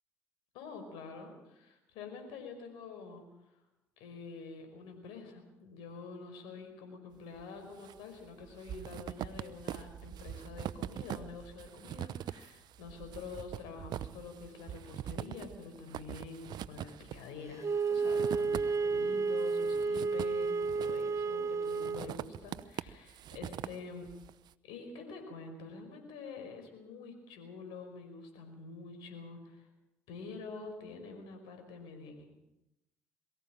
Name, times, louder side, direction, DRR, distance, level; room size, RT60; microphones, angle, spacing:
voice 1, 0.5-3.6 4.0-24.1 24.6-29.7 30.1-32.4, left 4 dB, 75° left, 6 dB, 5.1 m, -47 dB
sound 1, 7.4-8.0 8.3-19.0 19.4-21.2 21.7-24.3, right 11 dB, 60° right, 0.8 m, -43 dB
Wind instrument woodwind instrument, 17.6-22.1, right 4 dB, 40° right, 1.0 m, -31 dB
22.5 x 15.0 x 9.0 m, 0.91 s
hypercardioid pair, 60°, 8 cm